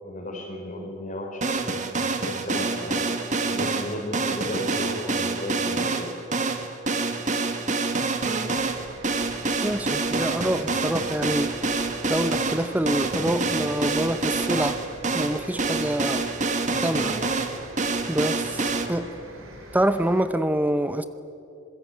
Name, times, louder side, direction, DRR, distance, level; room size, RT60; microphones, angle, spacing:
voice 1, 0.0-1.5 2.2-3.2 3.4-6.1, left 1 dB, 40° left, 0 dB, 3.9 m, -35 dB
sound 1, 1.4-18.9, right 3 dB, 40° right, 1.8 m, -27 dB
sound 2, 8.5-20.3, right 1 dB, 90° right, 5.3 m, -43 dB
voice 2, 9.6-11.6 12.1-14.8 15.1-16.2 16.8-17.2 18.1-19.1 19.7-21.0, right 1 dB, 10° right, 11 dB, 0.7 m, -26 dB
26.0 x 21.0 x 9.1 m, 2.8 s
head